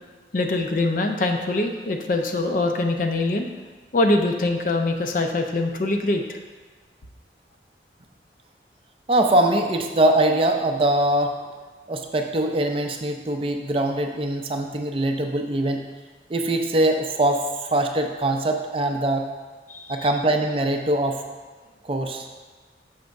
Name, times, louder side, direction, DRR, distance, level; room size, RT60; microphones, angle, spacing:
voice 1, 0.3-3.5 3.9-6.4 19.7-19.9, left 2 dB, 50° left, 4 dB, 0.5 m, -23 dB
voice 2, 9.1-11.4 11.9-15.9 16.3-19.3 19.9-21.2 21.8-22.3, right 1 dB, 30° right, 4 dB, 0.4 m, -22 dB
6.5 x 3.5 x 5.2 m, 1.4 s
head